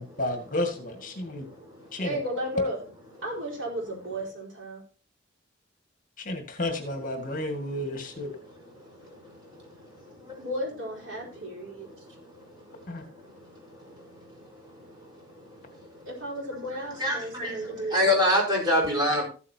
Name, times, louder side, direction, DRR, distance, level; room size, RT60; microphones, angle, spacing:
voice 1, 0.0-1.5 1.9-2.2 6.2-8.3 12.9-13.0, left 1 dB, 40° left, 5 dB, 1.9 m, -32 dB
voice 2, 2.0-2.8 3.2-4.8 10.4-11.9 16.1-18.0, equal, 70° right, -2 dB, 4.4 m, -33 dB
voice 3, 17.0-17.5 17.9-19.2, left 1 dB, 20° right, -3 dB, 4.9 m, -23 dB
14.0 x 8.3 x 2.8 m, 0.37 s
head